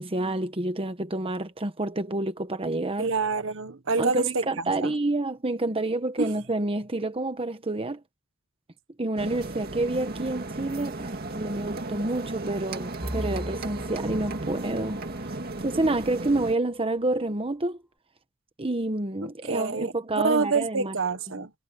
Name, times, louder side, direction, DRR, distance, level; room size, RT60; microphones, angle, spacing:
voice 1, 0.0-3.1 4.0-8.0 9.0-15.0 15.6-17.8 18.6-20.9 21.3-21.4, right 2 dB, 30° right, 1.2 m, -28 dB
voice 2, 3.0-4.9 6.2-6.4 19.2-19.9 20.2-21.5, right 4 dB, 70° right, 1.5 m, -27 dB
sound 1, 9.2-16.5, right 2 dB, 50° right, 2.2 m, -35 dB
sound 2, 13.0-14.9, equal, 5° right, 1.8 m, -36 dB
head